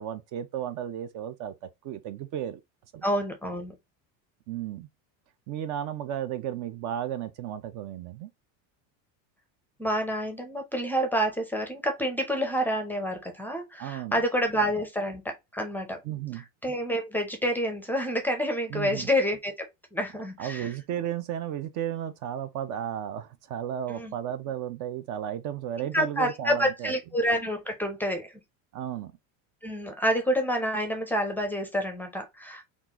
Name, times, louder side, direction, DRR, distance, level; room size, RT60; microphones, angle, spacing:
voice 1, 0.0-2.6 2.9-3.0 4.5-4.9 5.5-8.3 13.8-14.2 16.0-16.4 18.7-19.1 20.4-26.9 28.7-29.1, right 10 dB, 50° right, 0.5 m, -34 dB
voice 2, 3.0-3.7 9.8-16.0 16.6-20.7 23.9-24.1 25.9-28.3 29.6-32.6, equal, 5° left, 0.5 m, -28 dB
3.7 x 2.5 x 2.8 m
cardioid pair, 145°, 38 cm